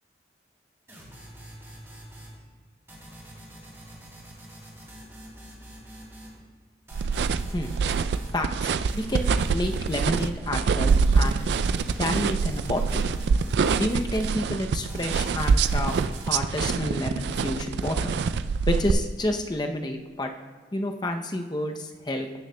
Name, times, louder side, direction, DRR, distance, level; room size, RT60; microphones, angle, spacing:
sound 1, 0.9-2.4 2.9-6.4 6.9-8.4 8.9-10.4 10.9-14.4 14.9-16.4, right 1 dB, 15° right, 2.2 m, -46 dB
sound 2, 6.9-18.9, right 5 dB, 70° right, 0.3 m, -25 dB
voice 1, 8.3-11.4 12.0-13.1 13.8-15.9 16.3-18.1 18.7-20.3 20.7-22.3, left 1 dB, 25° left, 4 dB, 0.6 m, -29 dB
15.5 x 6.4 x 2.2 m, 1.5 s
head